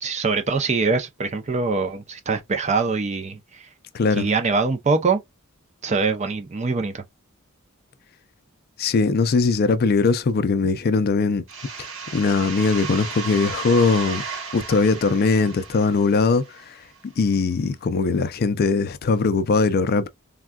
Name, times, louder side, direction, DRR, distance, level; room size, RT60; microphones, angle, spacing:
voice 1, 0.0-3.7 4.1-5.2 5.8-7.0, right 4 dB, 30° right, 0.5 m, -23 dB
voice 2, 3.9-4.3 8.8-11.4 12.1-14.2 14.5-20.1, left 4 dB, 45° left, 0.4 m, -20 dB
sound 1, 11.5-17.0, right 5 dB, 65° right, 1.2 m, -34 dB
3.5 x 2.2 x 2.2 m
head